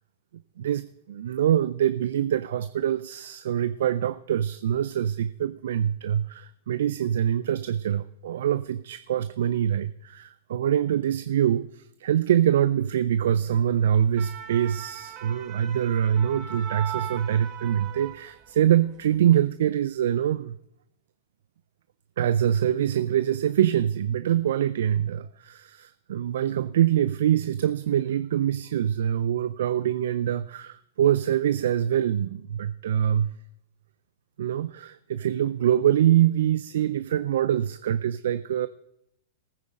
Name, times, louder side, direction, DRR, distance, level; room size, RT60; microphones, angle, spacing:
voice 1, 0.6-20.6 22.2-33.3 34.4-38.7, right 10 dB, 70° right, 15 dB, 0.4 m, -24 dB
sound 1, 13.9-18.7 19.0-19.3, right 9 dB, 40° right, 1.2 m, -39 dB
18.5 x 9.6 x 3.7 m, 0.79 s
hypercardioid pair, 110°, 0 cm